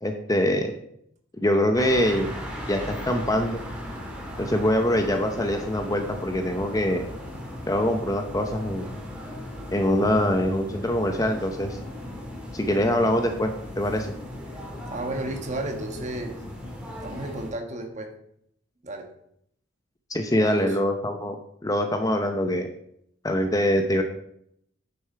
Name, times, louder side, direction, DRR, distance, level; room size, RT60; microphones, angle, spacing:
voice 1, 0.0-0.7 1.4-2.3 2.7-3.6 4.4-7.0 7.7-8.9 9.7-11.8 12.5-14.1 20.1-21.4 21.6-22.7 23.2-24.0, left 1 dB, 15° left, 5 dB, 0.7 m, -24 dB
sound 1, 1.8-17.5, left 1 dB, 5° right, 1.8 m, -37 dB
voice 2, 14.5-16.4 17.0-18.1 18.8-19.1 20.4-20.8, right 2 dB, 35° right, 4 dB, 1.5 m, -33 dB
9.2 x 7.0 x 4.6 m, 0.71 s
head